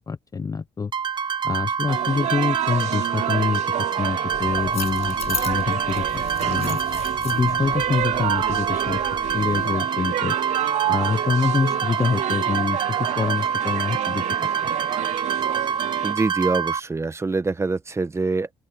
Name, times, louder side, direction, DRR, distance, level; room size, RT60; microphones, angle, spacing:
voice 1, 0.1-0.9 1.4-3.6 4.0-6.8 7.2-9.0 9.3-10.4 10.9-14.2, left 5 dB, 30° left, 0.8 m, -25 dB
sound 1, 0.9-16.8, right 7 dB, 40° right, 0.9 m, -26 dB
sound 2, 1.9-16.1, right 14 dB, 70° right, 0.5 m, -30 dB
sound 3, 4.3-9.7, left 10 dB, 60° left, 6.8 m, -37 dB
voice 2, 16.0-18.5, right 3 dB, 20° right, 1.3 m, -25 dB
open air
cardioid pair, 85°, 12 cm